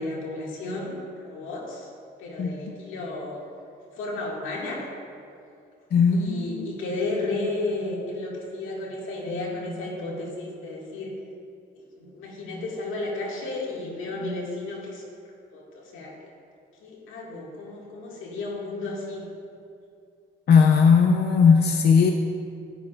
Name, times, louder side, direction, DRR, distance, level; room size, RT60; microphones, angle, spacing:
voice 1, 0.0-1.9 2.2-3.4 3.9-4.9 6.1-11.2 11.8-15.0 15.5-16.2 16.8-19.2, left 2 dB, 85° left, -3 dB, 2.0 m, -33 dB
voice 2, 5.9-6.6 20.5-22.1, left 6 dB, 55° left, 3 dB, 0.6 m, -18 dB
11.0 x 10.0 x 2.5 m, 2.4 s
cardioid pair, 90°, 20 cm